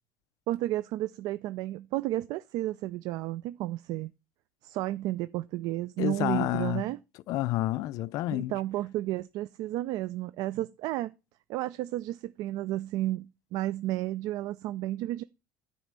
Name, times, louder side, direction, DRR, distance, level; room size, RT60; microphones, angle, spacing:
voice 1, 0.5-4.1 4.6-7.0 8.3-11.1 11.5-15.2, right 15 dB, 60° right, 0.4 m, -32 dB
voice 2, 6.0-6.8 7.3-8.5, left 16 dB, 55° left, 0.4 m, -29 dB
9.5 x 4.0 x 6.7 m
cardioid pair, 145°, 7 cm